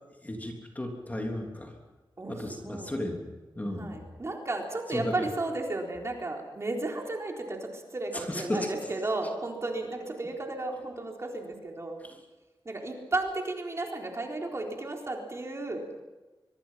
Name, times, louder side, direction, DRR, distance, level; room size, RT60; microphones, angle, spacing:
voice 1, 0.2-1.7 2.3-3.3 3.6-4.0 4.9-5.1 8.1-8.7, left 1 dB, 20° left, 1 dB, 3.4 m, -34 dB
voice 2, 2.2-2.9 3.8-12.0 12.6-15.9, right 2 dB, 35° right, 1 dB, 4.1 m, -34 dB
24.5 x 24.0 x 5.8 m, 1.2 s
wide cardioid pair, 140°, 9 cm